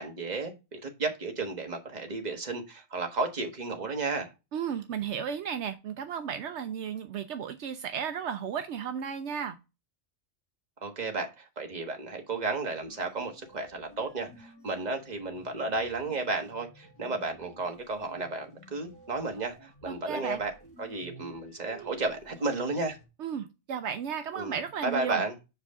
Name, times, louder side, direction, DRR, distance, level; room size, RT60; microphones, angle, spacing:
voice 1, 0.0-4.3 10.8-20.5 20.8-23.0 24.3-25.3, right 3 dB, 40° right, 1.4 m, -33 dB
voice 2, 4.5-9.6 19.9-20.4 23.2-25.2, right 8 dB, 75° right, 0.9 m, -34 dB
sound 1, 12.8-23.1, right 1 dB, 25° left, 3.3 m, -53 dB
6.7 x 5.0 x 3.5 m
omnidirectional pair, 1.2 m